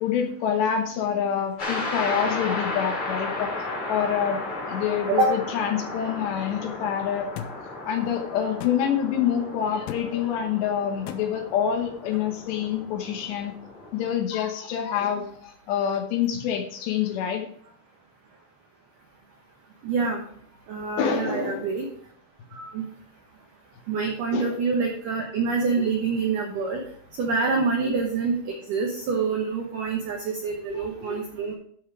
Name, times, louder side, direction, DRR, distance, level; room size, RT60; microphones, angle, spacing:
voice 1, 0.0-3.5 3.9-4.4 4.7-7.3 7.9-13.5 13.9-17.4 21.0-21.6 24.3-24.5 27.8-27.9 30.7-31.2, left 8 dB, 70° left, 4 dB, 3.1 m, -26 dB
sound 1, 1.6-14.1, left 2 dB, 35° left, 3.0 m, -34 dB
sound 2, 7.4-7.5 8.6-8.8 9.9-10.1 11.1-11.2, left 10 dB, 90° left, 3.1 m, -34 dB
voice 2, 19.8-20.2 20.7-21.9 22.5-22.9 23.9-26.8 27.2-30.2 30.4-31.5, right 4 dB, 75° right, 1 dB, 2.0 m, -26 dB
13.0 x 5.6 x 4.9 m, 0.62 s
omnidirectional pair, 5.5 m